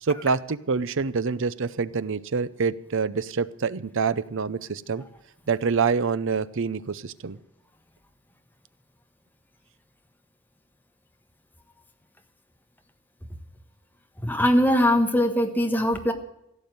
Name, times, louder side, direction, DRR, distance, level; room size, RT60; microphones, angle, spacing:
voice 1, 0.0-5.0 5.5-7.4, right 5 dB, 60° right, 16 dB, 0.6 m, -26 dB
voice 2, 14.2-16.1, equal, 10° left, 5 dB, 1.4 m, -21 dB
16.5 x 7.1 x 9.3 m, 0.80 s
head